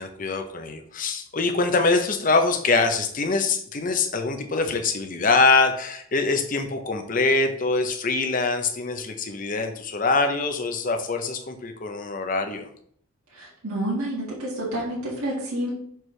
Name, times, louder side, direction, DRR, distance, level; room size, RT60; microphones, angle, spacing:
voice 1, 0.0-12.7, left 3 dB, 40° left, 6 dB, 0.6 m, -24 dB
voice 2, 13.4-15.7, right 1 dB, 80° right, -6 dB, 1.7 m, -29 dB
6.4 x 4.5 x 3.2 m, 0.64 s
head